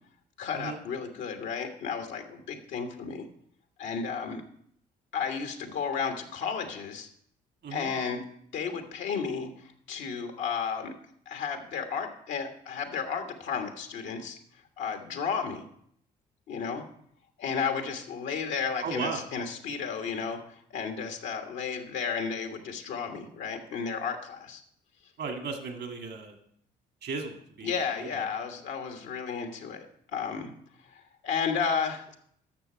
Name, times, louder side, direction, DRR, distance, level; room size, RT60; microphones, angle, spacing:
voice 1, 0.4-3.3 3.8-4.4 5.1-7.1 7.7-8.2 8.5-10.9 11.3-14.4 14.8-15.6 16.5-16.8 17.4-24.6 27.6-29.9 30.1-30.5 30.9-32.2, left 6 dB, 75° left, 5 dB, 1.4 m, -33 dB
voice 2, 18.8-19.2 25.2-26.4 27.0-27.7 28.0-28.2, right 4 dB, 65° right, 4 dB, 1.8 m, -35 dB
12.0 x 6.7 x 4.4 m, 0.67 s
supercardioid pair, 55°, 19 cm